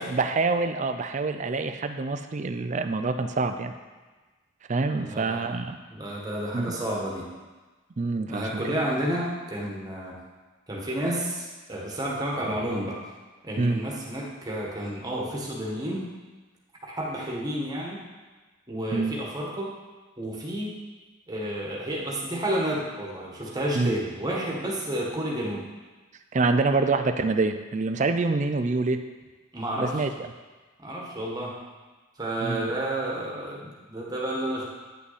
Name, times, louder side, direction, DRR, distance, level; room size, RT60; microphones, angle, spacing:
voice 1, 0.0-3.7 4.7-5.8 6.5-6.8 8.0-8.8 13.6-13.8 18.9-19.2 23.7-23.9 26.3-29.0 29.8-30.3 32.4-32.7, right 3 dB, 35° right, 8 dB, 0.4 m, -26 dB
voice 2, 5.0-5.6 5.9-7.3 8.3-10.2 10.7-13.0 13.4-16.0 16.8-18.0 18.7-19.7 20.2-20.7 21.3-25.6 29.5-30.0 30.8-31.5 32.2-34.6, right 1 dB, 20° right, -4 dB, 1.4 m, -31 dB
9.3 x 6.0 x 4.1 m, 1.3 s
head